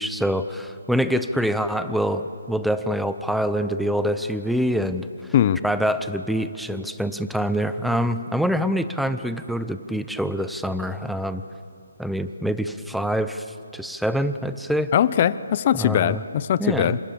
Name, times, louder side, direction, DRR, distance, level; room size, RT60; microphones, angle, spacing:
voice 1, 0.0-5.1 5.6-11.4 12.0-13.4 13.7-14.9 15.7-16.2 16.6-17.0, equal, ahead, 11 dB, 0.8 m, -25 dB
voice 2, 14.9-17.0, left 10 dB, 40° left, 16 dB, 0.8 m, -20 dB
27.5 x 26.0 x 7.1 m, 2.4 s
hypercardioid pair, 155°, 0 cm